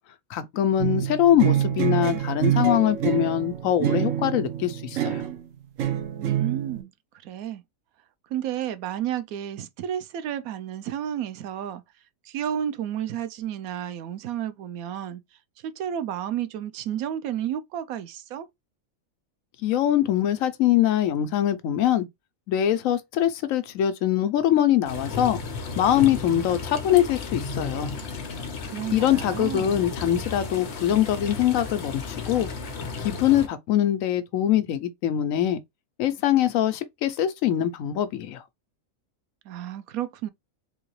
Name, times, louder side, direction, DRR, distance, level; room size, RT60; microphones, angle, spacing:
voice 1, 0.3-5.2 19.6-22.1 22.5-25.4 25.8-27.9 28.6-32.5 33.0-35.6 36.0-38.4, left 11 dB, 75° left, 1.0 m, -23 dB
sound 1, 0.8-5.4 5.8-6.8, right 11 dB, 70° right, 1.0 m, -26 dB
voice 2, 6.2-6.9 7.2-7.6 8.3-11.8 12.2-15.2 15.6-18.5 28.7-29.9 39.4-40.3, right 10 dB, 90° right, 1.0 m, -31 dB
sound 2, 24.9-33.5, left 4 dB, 55° left, 1.0 m, -34 dB
3.8 x 2.8 x 3.0 m
omnidirectional pair, 1.5 m